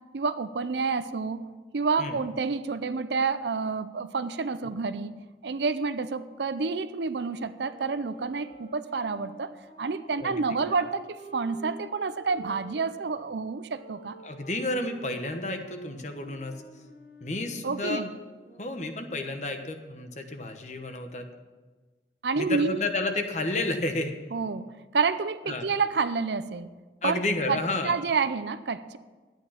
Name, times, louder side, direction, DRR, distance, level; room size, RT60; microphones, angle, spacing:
voice 1, 0.1-5.2 5.4-9.5 9.8-14.1 17.6-18.1 22.2-22.8 24.3-26.7 27.0-27.2 27.5-29.0, right 4 dB, 80° right, 13 dB, 0.6 m, -29 dB
sound 1, 7.3-13.0 13.7-19.2, right 1 dB, 65° left, 3.2 m, -49 dB
voice 2, 10.2-10.7 14.2-16.6 17.2-18.0 18.6-21.3 22.4-24.1 25.5-25.7 27.0-27.9, left 2 dB, 40° left, 6 dB, 1.1 m, -31 dB
12.5 x 9.2 x 5.8 m, 1.3 s
head